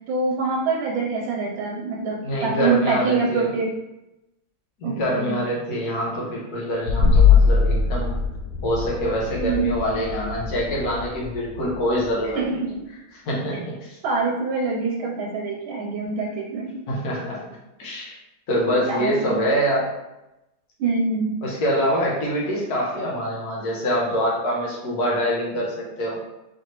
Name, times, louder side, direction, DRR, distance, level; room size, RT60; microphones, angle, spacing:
voice 1, 0.1-3.8 4.8-5.4 9.4-9.7 12.3-12.8 14.0-16.8 18.7-19.4 20.8-21.4, right 4 dB, 80° right, -1 dB, 1.4 m, -25 dB
voice 2, 2.2-3.5 4.8-8.2 8.6-12.4 13.3-14.0 16.9-17.4 17.8-18.1 18.5-19.9 21.4-26.2, equal, 55° left, -4 dB, 1.5 m, -25 dB
sound 1, 6.9-12.4, left 5 dB, 85° left, 0.8 m, -21 dB
4.6 x 3.1 x 3.0 m, 0.94 s
omnidirectional pair, 2.2 m